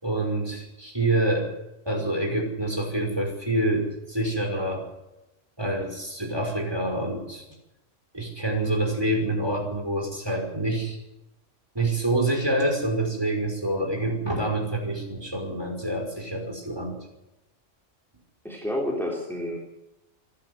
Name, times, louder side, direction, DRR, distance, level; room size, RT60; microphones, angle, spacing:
voice 1, 0.0-1.5 1.9-4.8 5.6-7.4 8.1-11.0 11.7-17.0, right 1 dB, 20° right, 1 dB, 5.5 m, -27 dB
voice 2, 18.4-19.6, left 1 dB, ahead, -2 dB, 3.5 m, -29 dB
27.5 x 11.5 x 8.1 m, 0.93 s
omnidirectional pair, 1.3 m